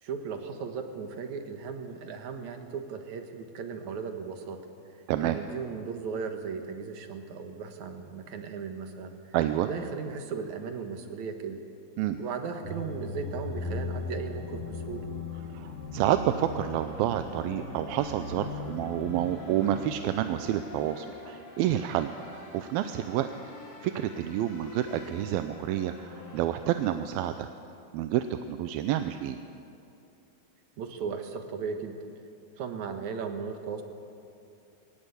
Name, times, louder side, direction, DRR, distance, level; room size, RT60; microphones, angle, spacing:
voice 1, 0.0-4.6 5.2-9.1 9.6-11.6 12.2-15.1 30.8-32.0 32.6-33.8, right 5 dB, 60° right, 6 dB, 2.4 m, -36 dB
voice 2, 9.3-9.7 12.0-12.2 15.5-23.3 23.8-27.5 27.9-29.4, right 12 dB, 80° right, 9 dB, 2.4 m, -29 dB
sound 1, 12.6-26.7, left 3 dB, 40° left, 3.4 m, -40 dB
22.0 x 19.0 x 8.2 m, 2.6 s
omnidirectional pair, 4.4 m